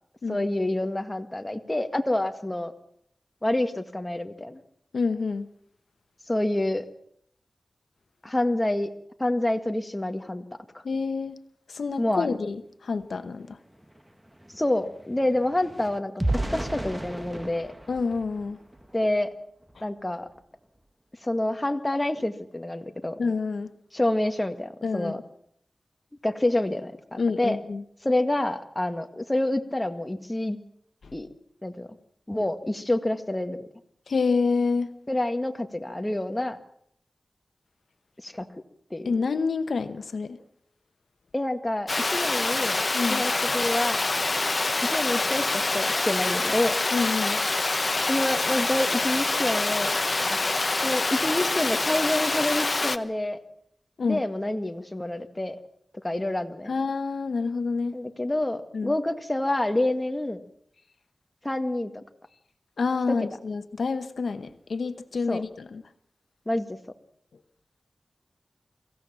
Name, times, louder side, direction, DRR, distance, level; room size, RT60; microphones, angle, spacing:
voice 1, 0.3-2.7 3.4-4.6 6.3-6.9 8.2-8.9 9.2-10.4 12.0-12.4 14.6-17.7 18.9-19.3 19.8-20.3 21.2-23.2 23.9-25.2 26.2-27.6 28.0-30.6 31.1-31.3 31.6-31.9 32.3-33.7 35.1-36.6 38.2-38.5 38.9-39.1 41.3-42.8 43.1-44.1 44.9-46.8 48.1-49.9 50.2-50.4 50.8-53.4 54.0-55.6 56.0-56.7 57.9-60.4 61.4-62.0 63.1-63.2 65.3-65.4 66.5-66.8, left 1 dB, 20° left, 7 dB, 1.9 m, -27 dB
voice 2, 4.9-5.5 10.8-11.4 11.7-13.6 17.9-18.6 19.8-19.9 23.2-23.7 24.8-25.2 27.2-27.8 34.1-34.9 39.0-40.4 42.9-43.2 46.9-47.4 54.0-54.2 56.7-58.0 58.7-58.9 62.8-65.8, left 4 dB, 85° left, 11 dB, 1.0 m, -28 dB
sound 1, 13.2-13.3 13.6-19.1 19.6-19.8 20.2-20.4, right 1 dB, 10° right, 1.6 m, -34 dB
Water, 41.9-53.0, left 3 dB, 45° left, 1.1 m, -26 dB
24.0 x 16.0 x 7.4 m, 0.68 s
wide cardioid pair, 60°, 0 cm